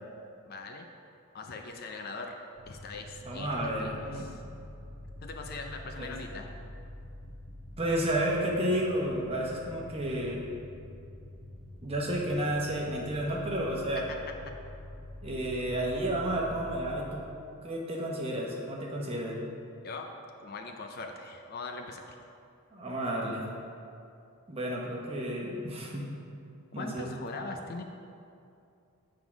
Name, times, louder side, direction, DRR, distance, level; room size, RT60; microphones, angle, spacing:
voice 1, 0.5-0.9 1.3-2.3 2.7-3.5 3.8-4.4 5.2-6.5 14.1-14.2 15.6-15.7 19.8-20.1 20.4-22.2 26.8-27.8, left 3 dB, 45° left, 3 dB, 0.5 m, -41 dB
sound 1, 2.5-17.7, left 1 dB, 85° right, 1.4 m, -46 dB
voice 2, 3.2-4.3 6.0-6.2 7.8-10.4 11.8-14.0 15.2-17.2 17.6-19.4 22.7-23.5 24.5-26.0 26.7-27.2, right 1 dB, 25° right, -2 dB, 1.0 m, -31 dB
8.0 x 3.8 x 5.9 m, 2.6 s
head